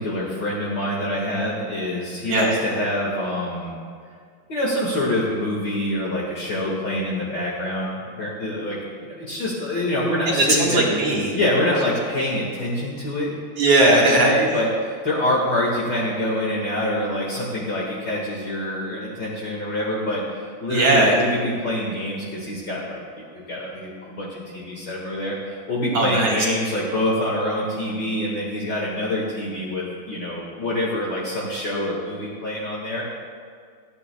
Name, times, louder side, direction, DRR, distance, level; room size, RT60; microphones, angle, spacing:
voice 1, 0.0-3.7 4.5-10.8 11.3-13.3 13.9-23.0 23.3-33.0, left 1 dB, 50° left, -5 dB, 1.3 m, -26 dB
voice 2, 10.3-11.4 13.6-14.3 20.7-21.2 25.9-26.3, right 2 dB, 50° right, -3 dB, 2.0 m, -18 dB
29.0 x 9.9 x 2.3 m, 2.1 s
omnidirectional pair, 4.8 m